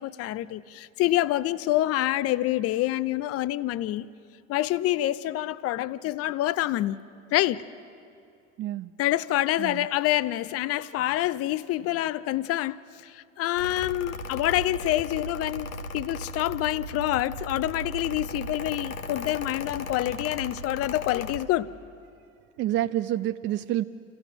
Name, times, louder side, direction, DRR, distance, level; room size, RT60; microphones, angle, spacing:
voice 1, 0.0-4.1 4.5-7.0 7.3-7.6 9.0-21.7, left 15 dB, 35° left, 0.6 m, -27 dB
voice 2, 8.6-8.9 9.6-9.9 22.6-23.8, right 13 dB, 30° right, 0.4 m, -28 dB
Mechanical fan, 13.5-21.4, left 1 dB, 85° left, 0.9 m, -37 dB
29.0 x 15.5 x 6.0 m
figure-of-eight pair, 75°, 40 cm